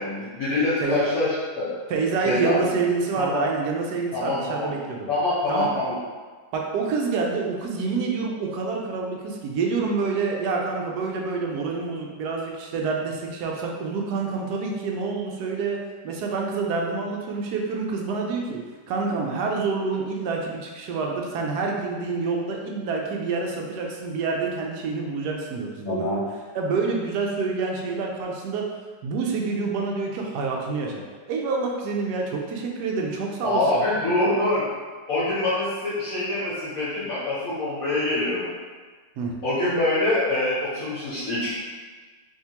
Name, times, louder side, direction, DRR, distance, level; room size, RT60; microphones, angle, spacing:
voice 1, 0.0-1.7 2.2-2.7 3.2-3.4 4.1-4.7 5.1-6.0 25.8-26.2 33.4-34.6 35.1-38.5 39.4-41.5, left 2 dB, 55° left, -11 dB, 1.3 m, -25 dB
voice 2, 1.9-5.1 5.5-5.7 6.5-18.6 18.9-26.2 26.5-28.7 29.0-31.0 31.3-33.6 39.2-39.3, right 4 dB, 70° right, 0 dB, 1.0 m, -27 dB
3.6 x 2.7 x 2.8 m, 1.4 s
omnidirectional pair, 2.0 m